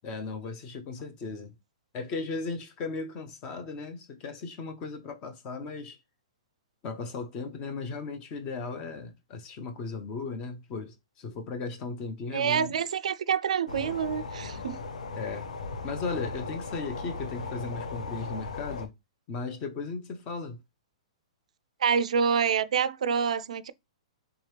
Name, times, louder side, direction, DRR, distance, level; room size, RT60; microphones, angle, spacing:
voice 1, 0.0-1.5 1.9-6.0 6.8-12.7 15.2-15.5 15.8-18.9 19.3-20.6, left 4 dB, 20° left, 0.5 m, -36 dB
voice 2, 12.3-14.8 21.8-23.7, right 7 dB, 75° right, 0.3 m, -27 dB
sound 1, 13.7-18.9, left 3 dB, 90° left, 0.7 m, -37 dB
3.5 x 2.9 x 3.3 m
hypercardioid pair, 170°, 4 cm